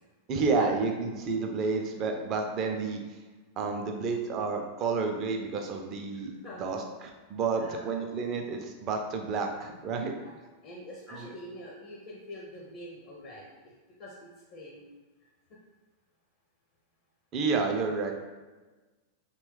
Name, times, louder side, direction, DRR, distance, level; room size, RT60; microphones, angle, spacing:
voice 1, 0.3-3.2 3.6-6.3 6.6-10.1 11.1-11.3 17.3-18.1, right 4 dB, 35° right, 3 dB, 0.4 m, -30 dB
voice 2, 6.1-6.6 7.5-7.9 10.1-10.4 10.6-13.7 14.0-15.0, left 1 dB, 40° left, -2 dB, 0.5 m, -45 dB
2.9 x 2.2 x 3.0 m, 1.2 s
figure-of-eight pair, 90°, 0 cm